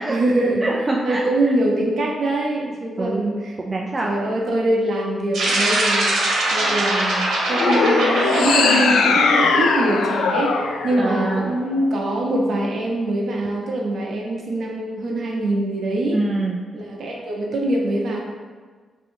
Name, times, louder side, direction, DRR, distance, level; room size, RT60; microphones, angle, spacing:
voice 1, 0.1-0.6 1.0-3.5 4.0-6.1 6.5-10.5 10.8-16.2 16.7-18.2, right 1 dB, 50° right, -1 dB, 0.8 m, -23 dB
voice 2, 0.6-1.5 3.0-3.2 3.6-4.1 11.0-11.6 16.1-16.6, right 2 dB, 20° right, -2 dB, 0.3 m, -25 dB
sound 1, 5.3-10.0, right 1 dB, 70° right, 1.1 m, -22 dB
sound 2, 7.5-11.9, left 4 dB, 90° left, 0.4 m, -20 dB
6.0 x 2.8 x 2.7 m, 1.5 s
wide cardioid pair, 170°, 0 cm